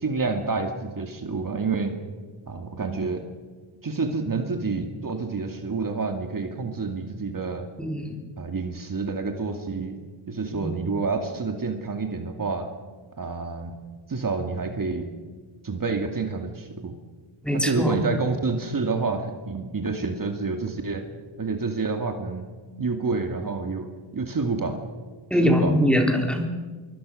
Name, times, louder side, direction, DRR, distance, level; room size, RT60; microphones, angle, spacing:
voice 1, 0.0-2.0 2.5-3.2 3.8-7.7 8.4-10.0 10.3-12.7 13.2-13.8 14.1-15.1 15.6-17.0 17.5-21.1 21.4-24.9 25.4-25.8, right 4 dB, 45° right, 4 dB, 2.4 m, -28 dB
voice 2, 7.8-8.1 10.5-10.7 17.4-18.0 25.3-26.5, equal, ahead, 2 dB, 3.9 m, -22 dB
25.0 x 23.5 x 6.6 m, 1.4 s
wide cardioid pair, 115°, 48 cm